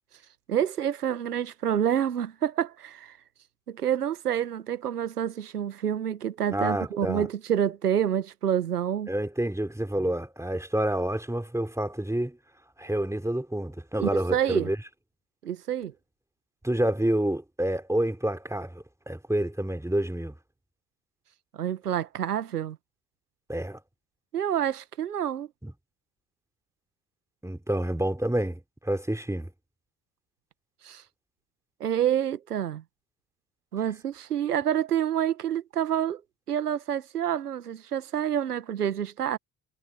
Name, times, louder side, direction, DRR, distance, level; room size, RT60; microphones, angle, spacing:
voice 1, 0.5-3.2 3.7-9.1 14.0-14.7 15.4-15.9 21.5-22.8 24.3-25.5 30.8-31.0 31.8-32.8 33.7-36.2 36.5-39.4, right 10 dB, 90° right, 1.8 m, -28 dB
voice 2, 6.5-7.3 9.1-12.4 12.8-14.8 16.6-20.3 23.5-23.8 25.6-25.7 27.4-29.5, right 1 dB, 5° right, 3.6 m, -28 dB
figure-of-eight pair, 45°, 45 cm